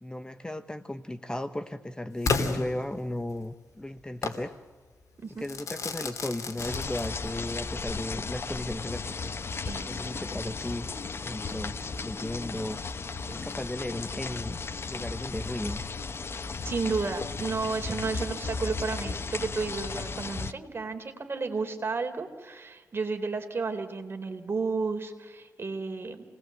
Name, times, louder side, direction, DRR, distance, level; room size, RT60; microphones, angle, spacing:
voice 1, 0.0-4.6 5.4-9.4 9.9-12.8 13.3-14.6 14.9-15.8, left 1 dB, 15° left, 10 dB, 1.1 m, -35 dB
Crackle / Fireworks, 2.2-3.4 4.2-4.5 5.4-7.4, left 4 dB, 65° left, 2.7 m, -32 dB
sound 1, 6.6-20.5, left 4 dB, 45° left, 1.0 m, -35 dB
voice 2, 9.7-10.1 11.5-11.7 13.3-13.4 16.6-26.2, right 4 dB, 40° right, 6 dB, 3.6 m, -32 dB
28.5 x 19.5 x 7.8 m, 1.3 s
cardioid pair, 90°, 6 cm